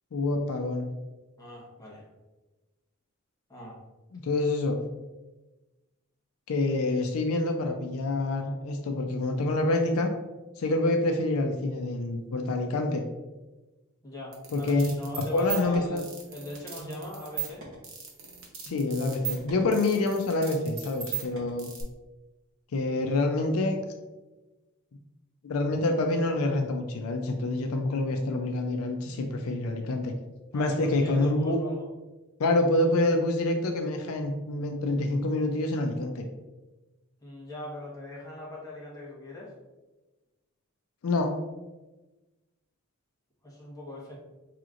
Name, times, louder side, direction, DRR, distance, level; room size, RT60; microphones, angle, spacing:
voice 1, 0.1-0.9 4.1-4.9 6.5-10.1 10.6-13.0 14.5-14.9 15.2-16.0 18.6-21.7 22.7-23.8 25.4-30.1 30.5-31.6 32.4-36.2 41.0-41.3, left 2 dB, 80° left, 4 dB, 0.4 m, -27 dB
voice 2, 1.4-2.0 3.5-3.8 14.0-17.7 30.5-31.8 37.2-39.5 43.4-44.2, left 1 dB, 15° left, -5 dB, 1.1 m, -40 dB
sound 1, 14.3-21.8, right 8 dB, 65° right, 0.8 m, -37 dB
4.9 x 3.0 x 2.4 m, 1.1 s
head